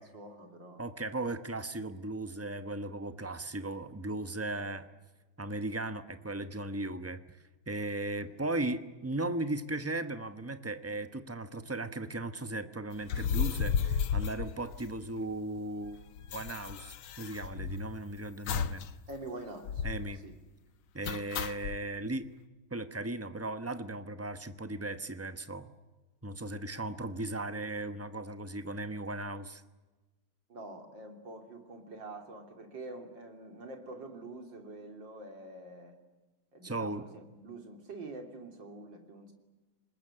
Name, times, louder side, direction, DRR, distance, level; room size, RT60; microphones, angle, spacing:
voice 1, 0.0-0.9 4.5-4.7 8.2-8.3 19.1-19.8 20.2-20.3 30.5-36.0 36.5-39.3, right 2 dB, 60° right, 5 dB, 3.8 m, -46 dB
voice 2, 0.8-4.9 5.4-7.4 7.7-16.0 16.3-18.9 19.8-20.2 20.9-22.3 22.7-25.7 26.2-29.6 36.6-37.1, right 2 dB, 15° right, 10 dB, 0.6 m, -37 dB
sound 1, 13.0-15.3 15.6-15.7 15.9-18.0 18.5-18.9 19.2-19.3 19.6-20.1 21.0-21.8, left 7 dB, 80° left, 1.9 m, -33 dB
26.0 x 20.5 x 10.0 m, 1.2 s
omnidirectional pair, 2.2 m